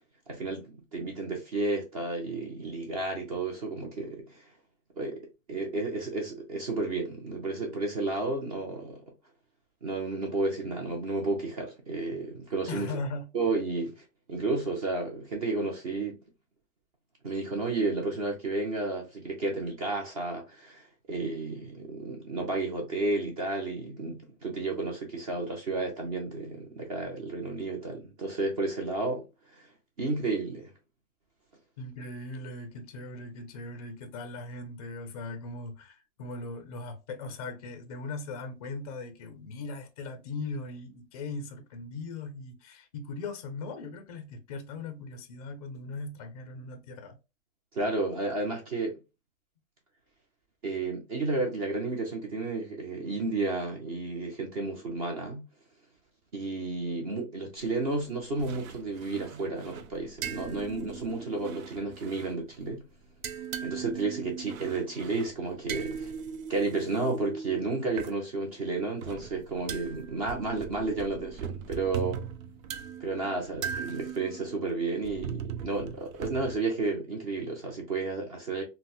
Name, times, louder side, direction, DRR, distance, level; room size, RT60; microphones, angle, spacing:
voice 1, 0.3-4.5 5.0-9.0 9.8-12.9 13.3-16.2 17.2-29.7 30.0-30.7 47.7-49.0 50.6-55.5 56.3-62.8 63.6-66.1 66.5-72.2 73.0-78.6, right 3 dB, 25° right, 0.5 m, -32 dB
voice 2, 12.7-13.3 31.8-47.2, left 3 dB, 30° left, 0.4 m, -39 dB
sound 1, 57.6-58.0 58.4-62.7 63.0-68.2 68.8-76.5, right 7 dB, 75° right, 0.6 m, -40 dB
4.0 x 2.0 x 2.3 m
hypercardioid pair, 160°, 41 cm